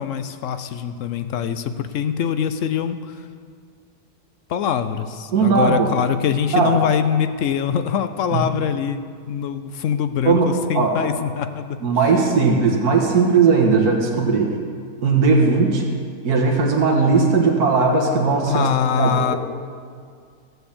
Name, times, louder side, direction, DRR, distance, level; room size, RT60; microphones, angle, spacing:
voice 1, 0.0-3.3 4.5-9.0 9.3-11.8 18.5-19.4, left 8 dB, 65° left, 10 dB, 0.9 m, -23 dB
voice 2, 5.3-5.9 6.5-6.7 8.3-8.4 10.3-11.0 11.8-14.5 15.0-15.8 16.2-19.4, right 4 dB, 80° right, 0 dB, 1.8 m, -18 dB
15.5 x 7.9 x 7.1 m, 2.1 s
omnidirectional pair, 1.6 m